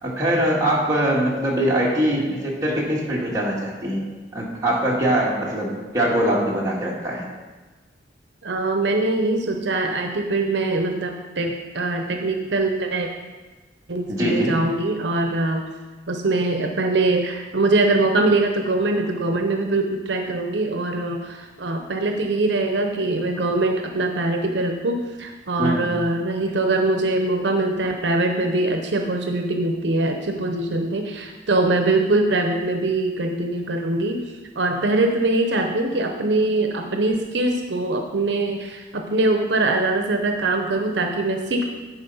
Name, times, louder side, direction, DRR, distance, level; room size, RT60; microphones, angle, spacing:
voice 1, 0.0-4.0 4.3-7.3 14.1-14.5 25.6-25.9, right 1 dB, 20° right, -5 dB, 1.8 m, -22 dB
voice 2, 8.4-13.1 13.9-15.6 16.1-34.2 34.6-41.6, right 2 dB, 75° right, 4 dB, 0.7 m, -22 dB
10.5 x 4.5 x 5.5 m, 1.3 s
head